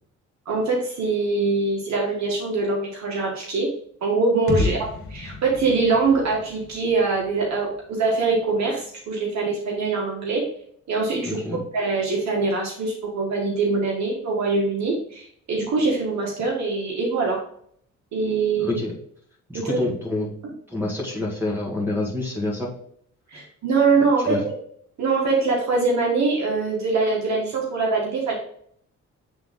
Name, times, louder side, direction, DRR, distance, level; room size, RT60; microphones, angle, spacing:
voice 1, 0.4-3.7 4.0-4.8 5.1-10.4 10.9-17.4 18.1-18.7 19.5-19.8 23.3-24.4 25.0-28.3, right 3 dB, 65° right, -1 dB, 1.7 m, -23 dB
sound 1, 4.5-8.3, left 2 dB, 45° left, 1.7 m, -32 dB
voice 2, 11.3-11.6 18.6-18.9 19.5-20.3 20.7-22.7 24.2-24.4, left 2 dB, 5° right, -2 dB, 1.8 m, -27 dB
8.0 x 3.7 x 3.7 m, 0.63 s
cardioid pair, 90°, 30 cm